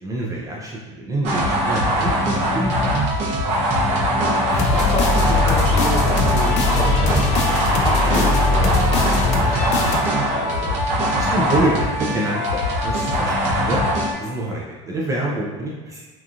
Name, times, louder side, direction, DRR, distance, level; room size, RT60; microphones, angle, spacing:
voice 1, 0.0-3.0 11.1-13.8 14.2-16.0, right 1 dB, 20° right, -3 dB, 0.4 m, -26 dB
sound 1, 1.2-14.1, equal, 50° right, 0.7 m, -21 dB
sound 2, 4.5-10.0, left 3 dB, 50° left, 0.4 m, -21 dB
voice 2, 4.7-10.8, left 1 dB, 25° left, -5 dB, 0.8 m, -29 dB
2.8 x 2.4 x 2.4 m, 1.3 s
supercardioid pair, 115°, 15 cm